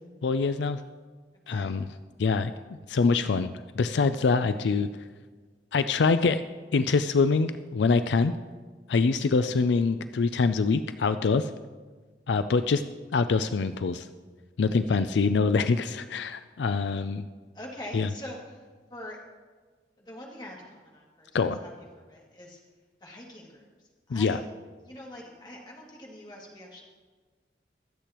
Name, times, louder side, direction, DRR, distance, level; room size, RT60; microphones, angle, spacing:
voice 1, 0.2-0.8 1.5-1.9 2.2-2.5 2.9-4.9 5.7-6.4 6.7-8.3 8.9-11.5 12.3-12.8 13.1-14.1 14.6-17.2 17.9-18.1 21.3-21.6 24.1-24.4, left 4 dB, 80° left, 11 dB, 0.4 m, -24 dB
voice 2, 17.5-19.2 20.0-21.3 21.6-21.7 22.1-22.6 23.0-24.4 24.9-26.8, left 1 dB, 25° left, -2 dB, 2.4 m, -44 dB
24.5 x 8.4 x 3.0 m, 1.4 s
head